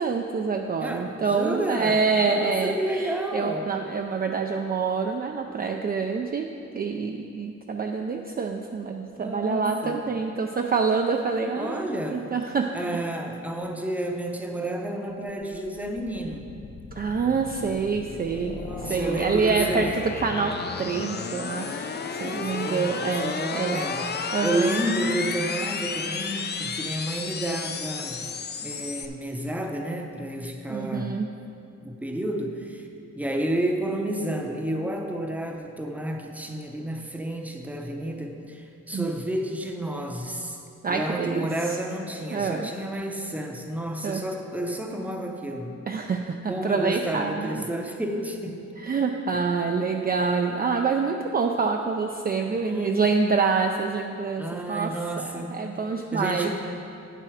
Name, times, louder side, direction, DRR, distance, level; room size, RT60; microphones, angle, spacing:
voice 1, 0.0-12.7 16.9-23.8 24.3-24.7 30.7-31.3 38.9-39.1 40.8-41.5 42.3-42.7 44.0-44.2 45.9-47.6 48.8-56.5, right 5 dB, 35° right, 3 dB, 0.4 m, -26 dB
voice 2, 0.8-3.7 9.2-10.0 11.5-12.2 12.7-16.5 18.5-19.9 22.0-28.3 28.6-31.2 31.8-32.9 33.2-40.6 40.9-45.8 46.5-48.6 49.3-49.4 52.5-53.1 54.4-55.6 56.1-56.5, right 1 dB, 5° right, 3 dB, 0.7 m, -31 dB
sound 1, 15.3-29.1, left 5 dB, 35° left, 0.5 m, -33 dB
9.1 x 7.6 x 4.9 m, 2.6 s
wide cardioid pair, 150°, 29 cm